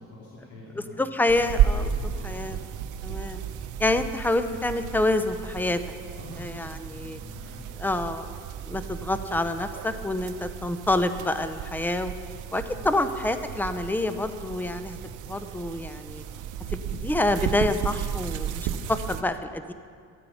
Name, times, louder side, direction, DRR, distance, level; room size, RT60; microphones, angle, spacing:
voice 1, 0.0-1.0 1.9-2.7 6.1-7.6 12.7-12.9 15.0-15.2 16.6-16.8 18.6-18.8, left 1 dB, 85° left, -7 dB, 2.8 m, -46 dB
voice 2, 1.0-1.9 2.2-2.6 3.0-3.4 3.8-5.8 6.4-7.2 7.8-8.3 8.6-12.1 12.5-15.0 15.2-16.2 17.0-19.7, left 2 dB, 5° left, 10 dB, 0.7 m, -27 dB
sound 1, 1.3-19.2, right 9 dB, 80° right, 0.7 m, -33 dB
14.0 x 9.6 x 5.8 m, 2.2 s
cardioid pair, 90°, 30 cm